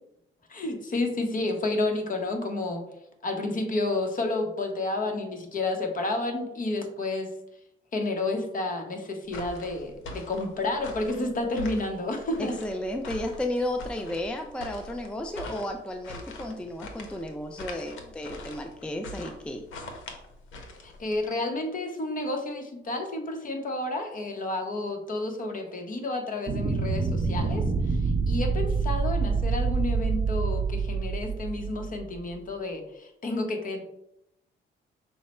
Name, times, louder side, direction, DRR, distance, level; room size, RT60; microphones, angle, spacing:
voice 1, 0.5-2.8 3.2-7.3 7.9-12.5 20.8-33.8, left 2 dB, 45° left, 3 dB, 1.0 m, -30 dB
sound 1, 9.3-21.2, left 1 dB, 80° left, 0.8 m, -42 dB
voice 2, 12.4-19.6, left 1 dB, 5° left, 4 dB, 0.4 m, -33 dB
sound 2, 26.5-32.2, right 4 dB, 40° right, 0.6 m, -27 dB
5.6 x 2.1 x 4.3 m, 0.83 s
cardioid pair, 90°, 20 cm